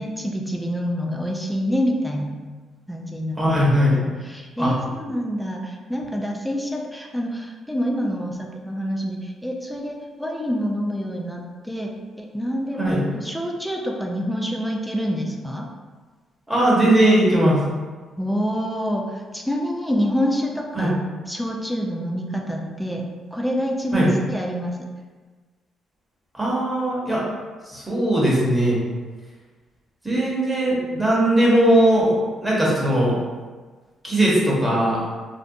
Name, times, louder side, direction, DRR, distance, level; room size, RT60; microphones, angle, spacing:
voice 1, 0.0-2.4 2.9-3.5 3.9-11.9 12.2-15.7 18.2-20.9 21.3-23.0 23.3-24.8, equal, ahead, 0 dB, 0.4 m, -27 dB
voice 2, 3.4-4.0 4.6-4.7 12.8-13.0 16.5-17.6 20.7-20.9 23.9-24.1 26.4-27.2 27.7-28.8 30.0-33.1 34.0-35.0, right 1 dB, 15° right, -6 dB, 0.9 m, -19 dB
2.5 x 2.1 x 2.6 m, 1.4 s
cardioid pair, 90°, 0 cm